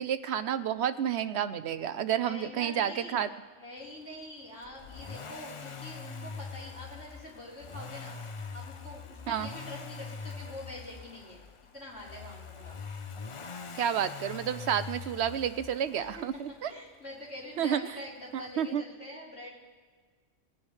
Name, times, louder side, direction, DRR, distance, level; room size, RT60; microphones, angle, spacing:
voice 1, 0.0-3.3 9.3-9.5 13.8-16.7 17.6-17.8 18.6-18.8, right 9 dB, 70° right, 12 dB, 0.8 m, -30 dB
voice 2, 2.2-3.2 3.6-8.2 8.5-11.4 11.7-12.8 16.0-16.2 16.7-19.5, left 1 dB, 80° left, -6 dB, 4.3 m, -45 dB
Accelerating revving vroom, 4.6-16.6 17.9-18.0, left 5 dB, 45° left, 0.4 m, -43 dB
20.5 x 10.5 x 3.2 m, 1.5 s
omnidirectional pair, 1.2 m